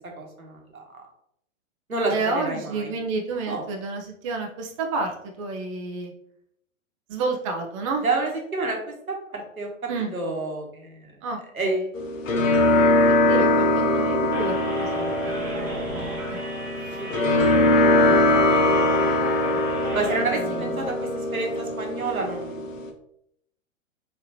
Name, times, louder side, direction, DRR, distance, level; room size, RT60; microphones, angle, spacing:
voice 1, 0.2-0.8 1.9-2.9 3.5-3.6 8.0-8.8 9.1-9.7 10.1-11.1 11.5-11.9 17.0-17.1 17.7-17.9 19.9-22.7, right 3 dB, 85° right, 1 dB, 1.2 m, -29 dB
voice 2, 2.1-6.1 7.1-8.0 9.9-10.1 11.2-11.9 13.1-16.4 16.8-17.0 18.1-19.6 20.1-20.9, right 3 dB, 25° right, 3 dB, 0.4 m, -31 dB
sound 1, 12.0-22.9, left 2 dB, 65° left, 0.8 m, -22 dB
sound 2, 14.3-20.2, right 1 dB, 5° right, 1.3 m, -36 dB
4.5 x 2.9 x 2.8 m, 0.73 s
figure-of-eight pair, 105°, 42 cm